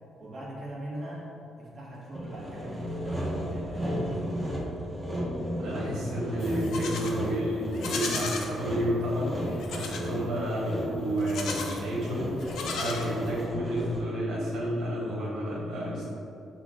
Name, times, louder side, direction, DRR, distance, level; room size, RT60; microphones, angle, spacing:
voice 1, 0.2-4.8, right 1 dB, 40° right, -6 dB, 1.5 m, -41 dB
Sawing, 2.2-14.2, equal, 15° right, 1.0 m, -34 dB
voice 2, 5.6-16.1, equal, 80° right, -5 dB, 1.4 m, -31 dB
Livestock farm animals working animals, 6.4-7.2 7.7-8.5 9.6-10.1 11.2-11.8 12.4-13.4, left 4 dB, 75° left, 0.5 m, -35 dB
5.8 x 2.4 x 3.7 m, 2.7 s
cardioid pair, 90°, 0 cm